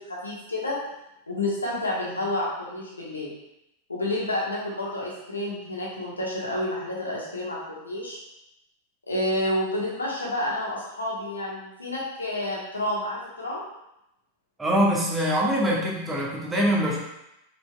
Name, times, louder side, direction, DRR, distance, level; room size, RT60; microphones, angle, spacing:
voice 1, 0.1-0.8 1.3-3.3 3.9-8.2 9.1-13.7, left 1 dB, 80° left, -4 dB, 1.3 m, -29 dB
voice 2, 14.6-17.0, equal, 10° right, -3 dB, 1.2 m, -23 dB
5.0 x 4.4 x 2.3 m, 0.86 s
figure-of-eight pair, 90°, 0 cm